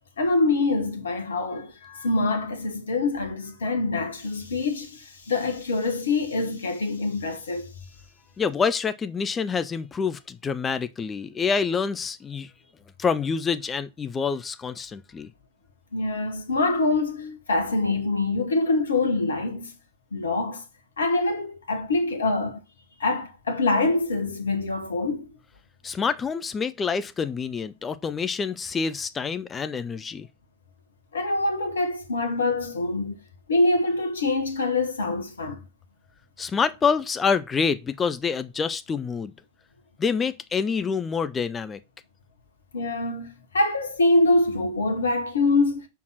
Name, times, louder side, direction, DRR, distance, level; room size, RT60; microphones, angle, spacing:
voice 1, 0.2-7.7 15.9-19.7 20.1-20.6 21.0-22.6 23.0-25.3 31.1-33.1 33.5-35.6 42.7-43.3 43.5-45.8, left 2 dB, 70° left, 1.3 m, -25 dB
voice 2, 8.4-12.5 13.0-15.3 25.8-30.3 36.4-39.3 40.0-41.8, left 5 dB, 20° left, 0.6 m, -27 dB
5.4 x 4.6 x 6.1 m
figure-of-eight pair, 90°, 0 cm